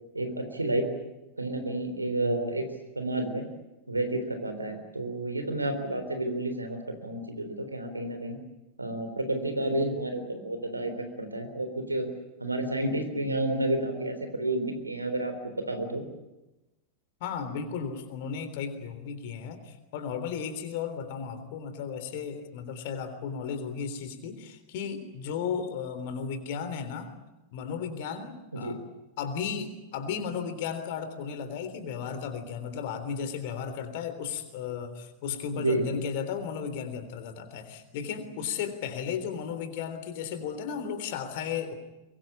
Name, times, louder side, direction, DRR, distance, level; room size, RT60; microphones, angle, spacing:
voice 1, 0.1-0.9 1.4-2.7 3.0-3.4 3.9-8.4 8.8-12.1 12.4-16.0 28.5-28.8 35.5-35.9, right 1 dB, 80° right, 7 dB, 3.7 m, -30 dB
voice 2, 17.2-27.1 27.5-28.8 29.2-41.8, left 7 dB, 50° left, 10 dB, 3.5 m, -35 dB
23.0 x 23.0 x 8.6 m, 1.0 s
figure-of-eight pair, 90°, 0 cm